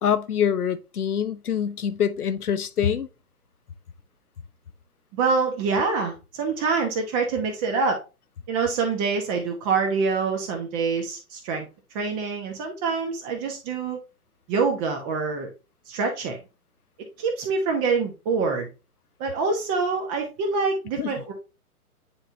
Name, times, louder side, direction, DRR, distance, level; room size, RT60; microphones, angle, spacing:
voice 1, 0.0-3.1 21.0-21.1, left 8 dB, 75° left, 0.9 m, -25 dB
voice 2, 5.1-8.0 8.5-11.7 11.9-14.0 14.5-15.5 15.9-16.4 17.2-18.7 19.2-21.3, right 4 dB, 20° right, 1.1 m, -25 dB
9.8 x 3.8 x 2.7 m
figure-of-eight pair, 130°, 45 cm